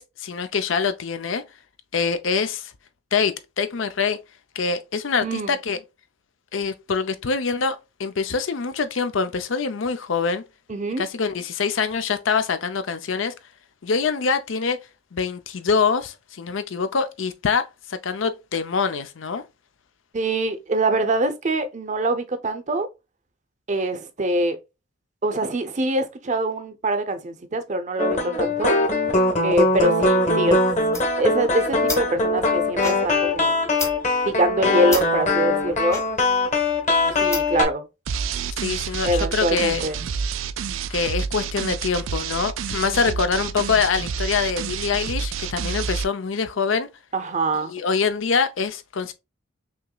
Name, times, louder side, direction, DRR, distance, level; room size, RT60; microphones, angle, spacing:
voice 1, 0.0-1.4 1.9-2.7 3.1-4.2 4.6-5.8 6.5-10.4 11.0-13.3 13.8-14.8 15.1-19.4 38.6-39.9 40.9-46.9 47.7-49.1, left 5 dB, 75° left, 0.6 m, -24 dB
voice 2, 5.2-5.6 10.7-11.0 20.1-22.9 23.7-24.6 25.2-28.8 29.4-30.6 31.2-33.5 34.3-36.0 37.0-37.9 39.0-40.0 42.8-43.1 47.1-47.7, right 1 dB, 40° right, 0.6 m, -24 dB
sound 1, 28.0-37.6, left 2 dB, 35° left, 1.2 m, -21 dB
sound 2, 30.7-37.7, left 2 dB, 15° left, 0.8 m, -35 dB
sound 3, 38.1-46.0, right 6 dB, 80° right, 0.4 m, -29 dB
5.7 x 3.0 x 2.3 m
head